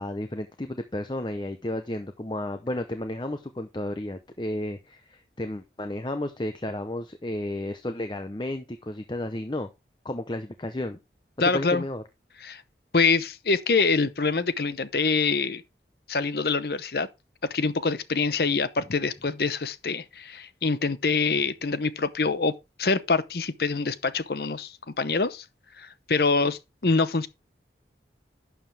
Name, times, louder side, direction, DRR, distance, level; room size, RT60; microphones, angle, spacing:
voice 1, 0.0-9.7 10.0-11.0 11.4-12.0, left 1 dB, 25° left, 0.7 m, -32 dB
voice 2, 11.4-11.8 12.4-12.6 12.9-15.6 16.1-17.1 17.4-22.5 22.8-25.4 25.8-27.3, left 4 dB, 60° left, 0.8 m, -25 dB
11.5 x 7.2 x 3.3 m
head